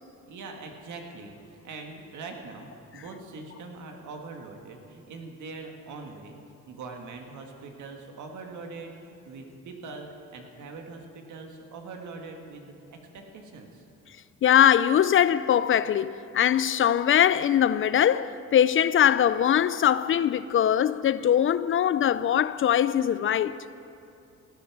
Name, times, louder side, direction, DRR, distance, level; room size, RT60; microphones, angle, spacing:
voice 1, 0.2-6.4 6.7-13.8, right 3 dB, 75° right, 1.7 m, -42 dB
voice 2, 14.4-23.5, left 10 dB, 45° left, 0.4 m, -22 dB
15.5 x 9.3 x 6.0 m
cardioid pair, 90°, 30 cm